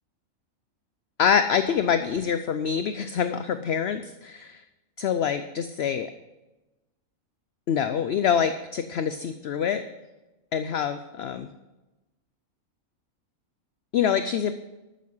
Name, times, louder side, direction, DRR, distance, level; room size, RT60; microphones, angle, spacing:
voice 1, 1.2-4.6 5.0-6.1 7.7-9.8 10.5-11.5 13.9-14.5, left 7 dB, 60° left, 10 dB, 0.8 m, -25 dB
13.0 x 9.3 x 5.5 m, 1.0 s
omnidirectional pair, 1.4 m